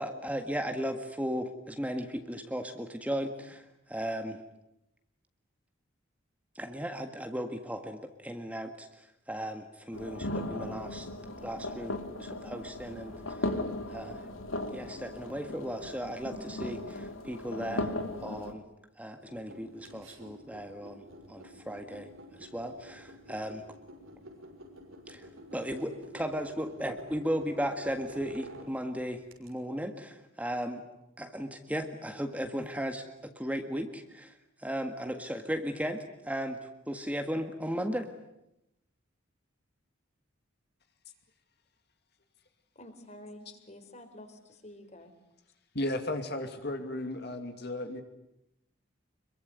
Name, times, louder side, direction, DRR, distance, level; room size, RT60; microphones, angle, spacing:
voice 1, 0.0-4.4 6.5-11.1 11.4-13.5 13.9-14.2 14.7-18.6 19.0-23.6 25.1-30.8 31.2-34.3 34.6-38.1, equal, 5° right, 6 dB, 1.7 m, -36 dB
sound 1, 9.9-18.5, left 1 dB, 80° left, 3.0 m, -37 dB
sound 2, 19.2-29.5, equal, 85° right, 6.5 m, -50 dB
voice 2, 42.8-45.1, left 1 dB, 35° left, 8 dB, 4.1 m, -49 dB
voice 3, 45.7-48.0, left 1 dB, 55° left, 6 dB, 2.6 m, -34 dB
26.5 x 23.0 x 9.7 m, 0.86 s
head